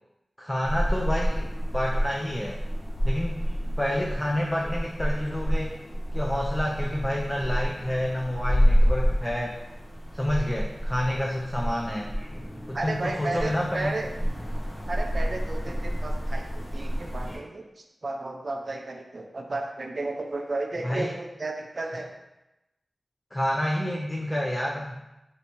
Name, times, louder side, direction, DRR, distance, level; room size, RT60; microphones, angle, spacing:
voice 1, 0.4-2.6 3.0-3.4 3.8-5.8 6.1-9.6 10.1-12.2 12.7-13.9 20.8-21.1 23.3-25.0, left 1 dB, 15° left, -2 dB, 0.4 m, -29 dB
sound 1, 0.6-17.4, equal, 65° left, 0.7 m, -28 dB
voice 2, 12.7-14.1 14.9-22.2, right 2 dB, 60° right, 3 dB, 0.4 m, -33 dB
3.3 x 2.6 x 2.9 m, 0.96 s
cardioid pair, 45°, 0 cm